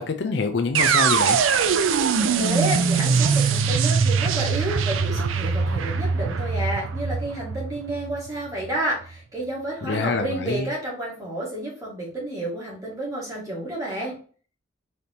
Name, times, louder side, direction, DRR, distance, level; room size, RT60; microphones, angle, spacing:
voice 1, 0.0-1.4 9.8-10.7, left 4 dB, 55° left, 6 dB, 0.5 m, -25 dB
sound 1, 0.7-8.7, right 5 dB, 80° right, 0.4 m, -22 dB
voice 2, 2.2-14.2, right 1 dB, 15° right, -4 dB, 1.8 m, -30 dB
4.2 x 3.4 x 2.8 m, 0.40 s
head